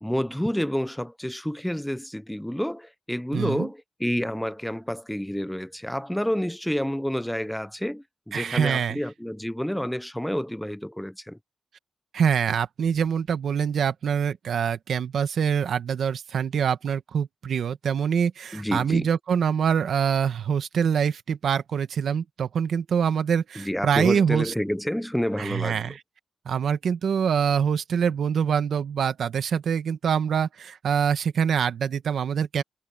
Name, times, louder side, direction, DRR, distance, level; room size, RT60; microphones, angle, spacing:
voice 1, 0.0-11.4 18.5-19.1 23.6-25.9, equal, 5° left, 0.6 m, -29 dB
voice 2, 3.3-3.7 8.3-9.0 12.1-24.5 25.4-26.0 26.4-32.6, right 7 dB, 90° right, 1.2 m, -25 dB
wide cardioid pair, 175°, 0 cm